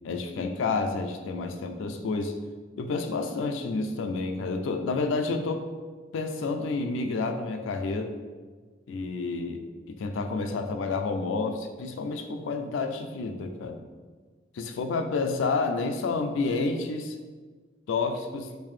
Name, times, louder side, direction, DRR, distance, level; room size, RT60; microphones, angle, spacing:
voice 1, 0.0-2.4 2.8-5.7 6.1-8.1 8.9-9.6 9.9-13.8 14.5-17.2 17.9-18.6, left 3 dB, 85° left, 6 dB, 0.3 m, -29 dB
3.7 x 2.6 x 3.2 m, 1.5 s
head